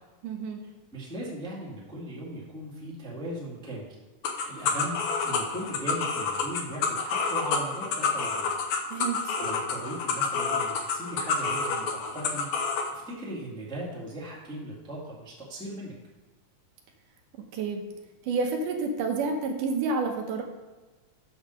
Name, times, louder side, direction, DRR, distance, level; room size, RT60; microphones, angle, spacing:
voice 1, 0.2-0.6 8.9-9.3 17.5-17.8 18.2-20.4, right 4 dB, 80° right, 3 dB, 2.6 m, -29 dB
voice 2, 0.9-3.9 4.4-8.5 9.4-15.9, right 1 dB, ahead, -5 dB, 1.1 m, -38 dB
sound 1, 4.2-12.9, left 5 dB, 70° left, 1.9 m, -28 dB
7.1 x 5.5 x 6.4 m, 1.2 s
omnidirectional pair, 3.7 m